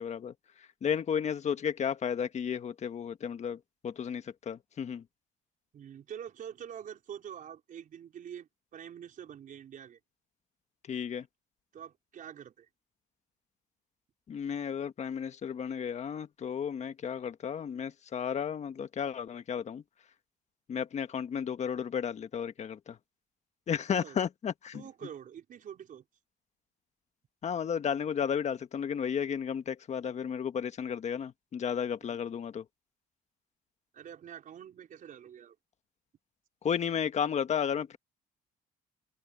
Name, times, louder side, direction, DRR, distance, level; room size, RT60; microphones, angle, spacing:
voice 1, 0.0-5.0 10.8-11.3 14.3-19.8 20.7-23.0 23.7-24.8 27.4-32.6 36.6-38.0, left 7 dB, 45° left, 1.6 m, -33 dB
voice 2, 5.7-10.0 11.7-12.7 24.0-24.2 24.7-26.0 32.0-32.2 33.9-35.6, right 9 dB, 50° right, 5.0 m, -46 dB
open air
cardioid pair, 110°, 17 cm